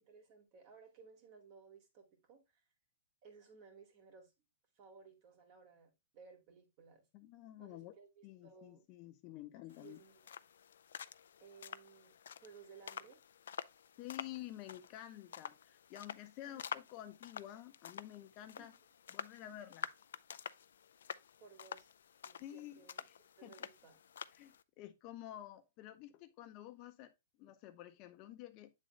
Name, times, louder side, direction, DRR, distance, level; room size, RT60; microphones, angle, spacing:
voice 1, 0.0-2.6 3.2-4.3 4.8-7.1 7.6-8.9 9.8-10.2 11.4-12.1 12.4-13.2 16.4-16.7 18.6-18.7 21.4-21.9 22.2-23.0 23.4-24.0, right 5 dB, 45° right, 2.3 m, -59 dB
voice 2, 7.1-7.9 8.2-10.0 14.0-18.7 19.1-19.9 22.4-23.2 23.4-23.7 24.3-27.1 27.4-28.7, left 13 dB, 40° left, 0.6 m, -50 dB
sound 1, 9.7-24.6, left 8 dB, 80° left, 0.3 m, -49 dB
8.3 x 3.8 x 3.2 m
hypercardioid pair, 135°, 0 cm